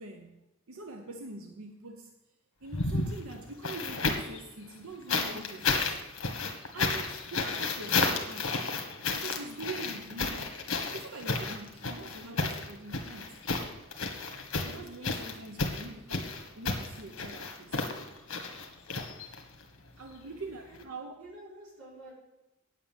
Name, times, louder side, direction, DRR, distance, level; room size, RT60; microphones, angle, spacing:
voice 1, 0.0-2.2 2.6-6.0 6.7-8.6 9.2-10.6 10.9-13.4 14.3-17.9 20.0-21.2, right 3 dB, 85° right, 0.8 m, -44 dB
sound 1, 2.6-4.4 5.1-19.6 20.7-20.8, left 3 dB, 80° left, 1.6 m, -32 dB
voice 2, 21.2-22.1, right 1 dB, 65° right, 5.3 m, -49 dB
9.3 x 8.4 x 7.5 m
head